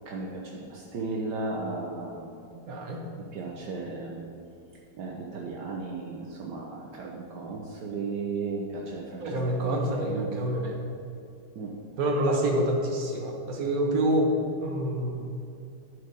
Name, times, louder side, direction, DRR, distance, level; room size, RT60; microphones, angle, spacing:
voice 1, 0.0-2.3 3.3-4.2 4.9-10.4 11.5-11.8, right 3 dB, 70° right, -2 dB, 1.5 m, -35 dB
voice 2, 2.6-3.1 9.2-10.7 12.0-15.2, right 1 dB, 55° right, 0 dB, 1.6 m, -27 dB
12.0 x 4.8 x 5.3 m, 2.6 s
omnidirectional pair, 1.9 m